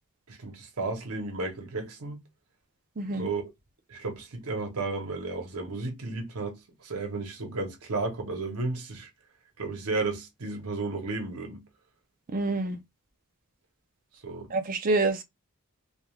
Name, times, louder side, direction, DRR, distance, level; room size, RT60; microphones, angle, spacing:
voice 1, 0.3-2.2 3.2-3.4 3.9-9.1 9.6-11.6 14.2-14.5, right 3 dB, 80° right, 0.9 m, -33 dB
voice 2, 3.0-3.3 12.3-12.8 14.5-15.2, right 2 dB, 40° right, 0.5 m, -27 dB
3.1 x 2.3 x 2.3 m
head